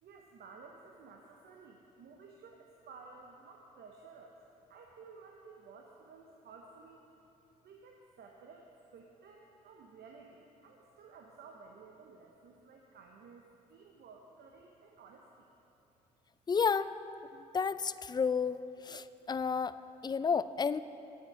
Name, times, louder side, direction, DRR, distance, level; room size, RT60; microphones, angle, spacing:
voice 1, 0.0-4.4 4.7-7.1 7.6-15.5, right 4 dB, 65° right, 1 dB, 0.8 m, -54 dB
voice 2, 16.5-16.9 17.3-18.6 18.8-19.8 20.0-20.8, left 5 dB, 25° left, 15 dB, 0.4 m, -31 dB
9.3 x 8.1 x 6.3 m, 3.0 s
hypercardioid pair, 45°, 18 cm